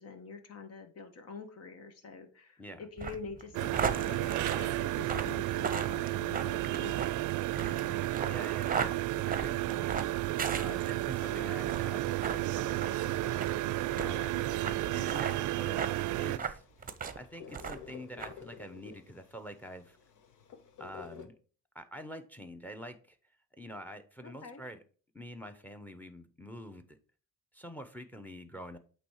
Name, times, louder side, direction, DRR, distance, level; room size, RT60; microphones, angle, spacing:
voice 1, 0.0-7.1 24.2-24.6, left 4 dB, 55° left, 1.5 m, -46 dB
sound 1, 3.0-11.2 11.6-11.9 12.2-12.4 12.8-12.9 13.4-13.5 14.0-14.1 14.6-14.8 15.0-15.3 15.8-15.9 16.4-17.2 17.5-17.9 18.2-18.3, right 6 dB, 30° right, 0.7 m, -36 dB
sound 2, 3.5-16.4, right 16 dB, 80° right, 0.5 m, -32 dB
voice 2, 7.6-9.9 10.5-13.4 14.0-14.5 14.9-15.9 16.1-16.6 17.2-20.0 20.8-21.3 21.7-23.2 23.6-24.8 25.1-27.0 27.5-28.8, equal, 5° left, 0.9 m, -46 dB
sound 3, 11.2-21.3, left 7 dB, 90° left, 1.0 m, -53 dB
8.4 x 3.2 x 4.8 m
cardioid pair, 90°, 30 cm